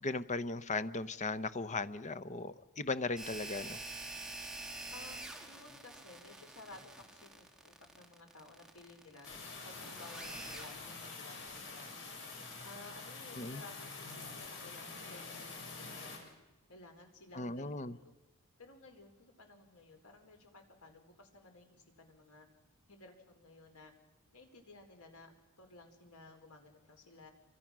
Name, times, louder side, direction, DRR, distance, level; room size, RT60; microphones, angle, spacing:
voice 1, 0.0-3.8 13.3-13.6 17.3-18.0, left 3 dB, 35° left, 14 dB, 0.9 m, -37 dB
sound 1, 3.2-14.5, right 2 dB, 5° right, 3.0 m, -48 dB
voice 2, 4.9-9.3 9.6-12.2 12.6-16.3 16.7-18.1 18.6-22.5 22.9-23.9 24.3-25.3 25.6-27.3, left 2 dB, 90° left, 5 dB, 4.7 m, -56 dB
sound 2, 9.2-16.2, left 4 dB, 60° left, 6.7 m, -47 dB
28.5 x 24.5 x 6.2 m, 1.1 s
head